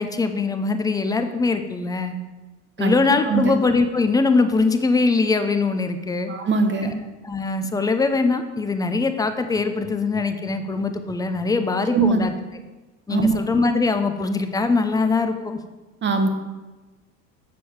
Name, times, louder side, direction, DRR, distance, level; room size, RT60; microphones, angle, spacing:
voice 1, 0.0-2.2 2.8-6.3 6.8-6.9 7.2-12.3 13.1-15.6, left 3 dB, 10° left, 7 dB, 0.4 m, -22 dB
voice 2, 6.3-7.0 11.9-12.2 13.1-13.4 16.0-16.3, right 4 dB, 25° right, 7 dB, 1.0 m, -21 dB
7.4 x 6.9 x 4.7 m, 1.2 s
figure-of-eight pair, 70°, 48 cm